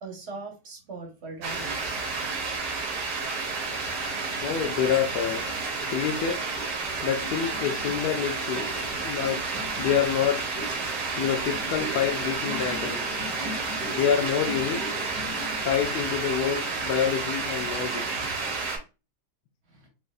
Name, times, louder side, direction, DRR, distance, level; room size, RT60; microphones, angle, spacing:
voice 1, 0.0-2.0 19.7-19.8, right 3 dB, 45° right, 1.2 m, -40 dB
sound 1, 1.4-18.8, right 4 dB, 80° right, 1.6 m, -31 dB
sound 2, 3.5-18.5, left 2 dB, 5° left, 1.5 m, -41 dB
voice 2, 4.4-5.4 5.9-6.5 7.0-8.6 9.0-9.4 9.8-10.6 11.2-13.1 13.9-15.0 15.6-18.0, left 8 dB, 75° left, 1.1 m, -27 dB
4.5 x 2.6 x 2.4 m
omnidirectional pair, 1.8 m